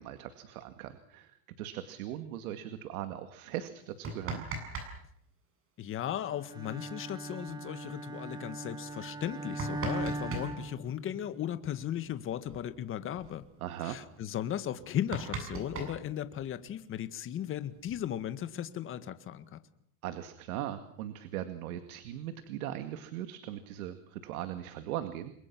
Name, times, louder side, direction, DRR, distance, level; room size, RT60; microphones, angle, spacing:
voice 1, 0.0-4.5 13.6-14.0 20.0-25.3, right 12 dB, 80° right, 9 dB, 2.2 m, -39 dB
sound 1, 3.8-4.9 5.2-5.3 7.0-7.1 7.5-7.6 8.2-8.3 9.1-10.5 12.0-12.2 12.4-12.7 13.0-13.4 13.9-14.0 14.4-14.5 14.8-16.7 17.6-18.4, right 3 dB, 30° right, 7.5 m, -39 dB
voice 2, 5.8-13.4 13.8-19.6, left 10 dB, 30° left, 11 dB, 1.8 m, -36 dB
Bowed string instrument, 6.5-11.4, right 2 dB, 10° right, 1.0 m, -40 dB
29.5 x 23.0 x 6.2 m, 0.69 s
supercardioid pair, 145°, 42 cm